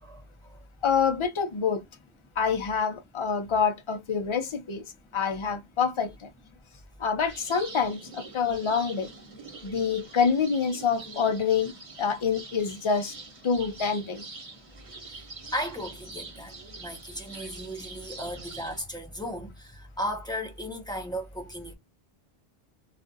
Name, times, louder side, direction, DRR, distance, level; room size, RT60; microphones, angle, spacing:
voice 1, 0.0-0.6 15.1-15.2 15.5-16.5 16.8-21.8, equal, 5° left, 0.7 m, -35 dB
voice 2, 0.8-1.8 2.4-4.8 5.1-6.3 7.0-9.1 9.6-11.7 12.0-13.1 13.4-14.2, left 6 dB, 40° left, 0.5 m, -26 dB
sound 1, 7.3-18.8, right 3 dB, 35° right, 1.0 m, -45 dB
2.4 x 2.3 x 3.9 m
omnidirectional pair, 1.1 m